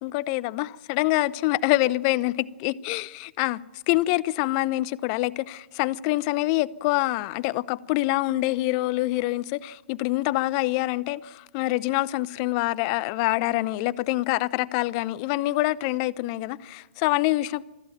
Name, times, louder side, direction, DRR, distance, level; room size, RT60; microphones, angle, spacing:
voice 1, 0.0-17.6, left 18 dB, 35° left, 0.7 m, -26 dB
23.5 x 14.0 x 9.2 m
hypercardioid pair, 135°, 6 cm